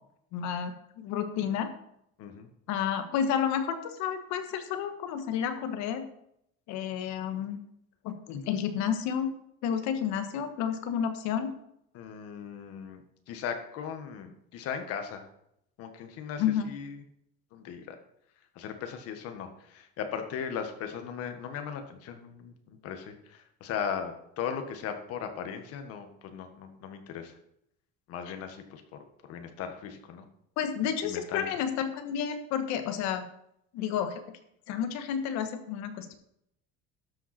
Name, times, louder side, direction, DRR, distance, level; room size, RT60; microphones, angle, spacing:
voice 1, 0.3-1.7 2.7-6.1 6.7-7.6 8.0-9.3 9.6-11.5 16.4-16.7 30.6-33.2 33.7-34.2 34.7-36.1, left 8 dB, 70° left, 7 dB, 1.5 m, -31 dB
voice 2, 2.2-2.5 11.9-13.0 13.3-15.2 15.8-17.0 17.5-18.0 18.5-27.3 28.1-30.3 31.0-31.5, left 7 dB, 55° left, 6 dB, 1.6 m, -38 dB
12.5 x 7.8 x 4.3 m, 0.75 s
cardioid pair, 175°, 29 cm